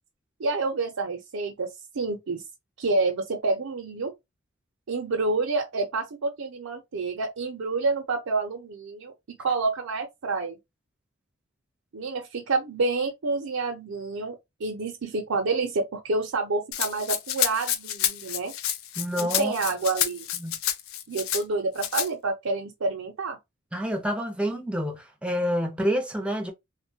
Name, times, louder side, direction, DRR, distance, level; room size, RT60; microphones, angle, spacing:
voice 1, 0.4-2.4 2.8-4.1 4.9-10.6 11.9-18.5 19.2-20.3 21.1-23.4, right 3 dB, 85° right, 0.6 m, -28 dB
Rattle (instrument), 16.7-21.4 21.8-22.1, left 11 dB, 80° left, 0.4 m, -29 dB
voice 2, 19.0-19.5 20.4-20.6 23.7-26.5, equal, 5° right, 0.6 m, -28 dB
3.0 x 2.2 x 2.6 m
head